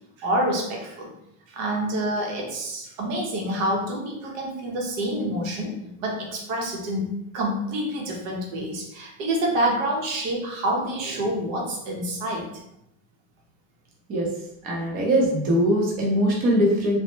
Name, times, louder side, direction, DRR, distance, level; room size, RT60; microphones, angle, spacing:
voice 1, 0.2-1.1 1.5-12.5, right 1 dB, 75° right, -1 dB, 1.0 m, -27 dB
voice 2, 14.6-17.0, equal, 25° right, -3 dB, 0.5 m, -21 dB
3.2 x 2.0 x 3.0 m, 0.79 s
cardioid pair, 175°, 39 cm